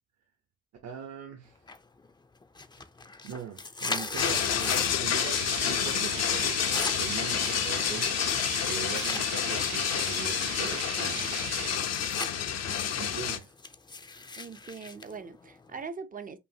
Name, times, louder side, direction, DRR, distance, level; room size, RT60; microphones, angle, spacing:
voice 1, 0.8-1.6 3.2-6.6 6.9-11.4 12.9-13.5, right 8 dB, 60° right, 0.9 m, -41 dB
sound 1, 1.7-2.1 2.4-5.1 5.4-5.9 6.2-9.2 9.8-12.3 12.7-15.9, left 3 dB, 15° left, 0.5 m, -38 dB
sound 2, 4.2-13.4, left 9 dB, 60° left, 0.7 m, -29 dB
sound 3, 5.2-11.8, right 11 dB, 85° right, 0.6 m, -39 dB
voice 2, 12.7-13.2 14.4-16.4, right 5 dB, 30° right, 0.5 m, -42 dB
5.4 x 2.5 x 2.7 m
cardioid pair, 90°, 30 cm